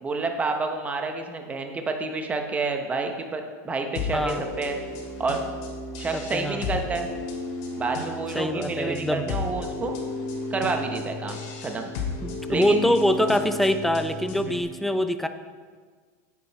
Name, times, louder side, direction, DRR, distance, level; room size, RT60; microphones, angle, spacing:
voice 1, 0.0-4.8 5.2-5.4 6.0-7.1 7.8-9.9 10.5-11.9 12.5-13.0 14.4-14.6, right 3 dB, 15° right, 4 dB, 1.0 m, -29 dB
sound 1, 3.9-14.6, left 3 dB, 60° left, 2.6 m, -34 dB
voice 2, 4.1-4.4 6.1-6.7 8.3-9.2 12.2-15.3, equal, ahead, 8 dB, 0.5 m, -24 dB
9.7 x 8.4 x 4.3 m, 1.6 s
supercardioid pair, 130°, 9 cm